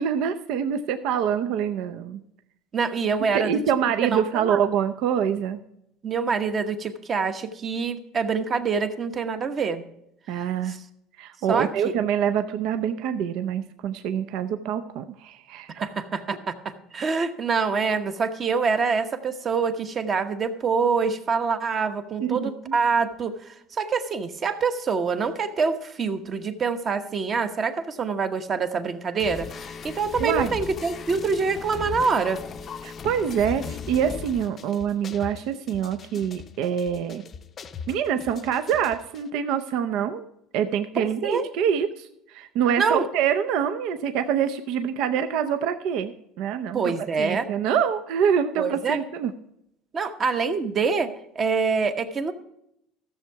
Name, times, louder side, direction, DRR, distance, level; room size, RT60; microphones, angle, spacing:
voice 1, 0.0-2.2 3.3-5.6 10.3-10.8 11.2-15.8 22.2-22.8 30.2-30.5 32.8-37.2 37.9-40.2 40.5-49.3, right 8 dB, 65° right, 9 dB, 0.7 m, -25 dB
voice 2, 2.7-3.6 4.0-4.6 6.0-9.8 10.4-10.8 11.5-11.7 15.7-32.4 41.0-41.5 42.8-43.1 46.7-47.4 48.6-49.0 49.9-52.3, right 5 dB, 30° right, 9 dB, 1.0 m, -26 dB
sound 1, 29.2-39.2, left 6 dB, 30° left, 0.6 m, -38 dB
15.0 x 7.1 x 4.6 m, 0.80 s
cardioid pair, 145°, 0 cm